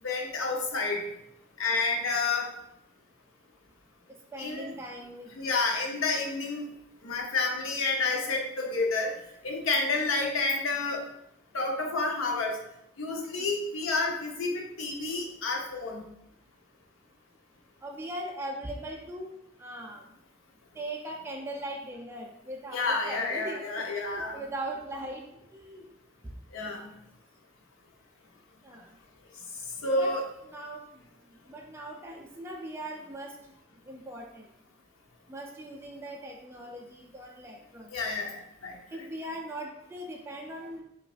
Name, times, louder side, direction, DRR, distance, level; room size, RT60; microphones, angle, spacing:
voice 1, 0.0-1.0 1.6-2.5 4.4-4.7 5.3-6.7 7.0-9.1 9.4-11.0 11.5-12.6 13.0-16.0 22.7-24.4 26.5-26.9 29.8-30.2 37.9-38.8, left 3 dB, 75° left, 1 dB, 0.7 m, -29 dB
voice 2, 4.3-5.3 13.4-13.5 17.8-19.3 19.6-20.0 20.7-25.2 25.5-25.8 28.6-28.8 29.9-30.1 30.5-30.8 31.5-33.3 33.9-34.4 35.3-37.9 38.9-40.8, right 1 dB, 10° right, 0 dB, 0.4 m, -39 dB
5.2 x 2.5 x 2.3 m, 0.80 s
head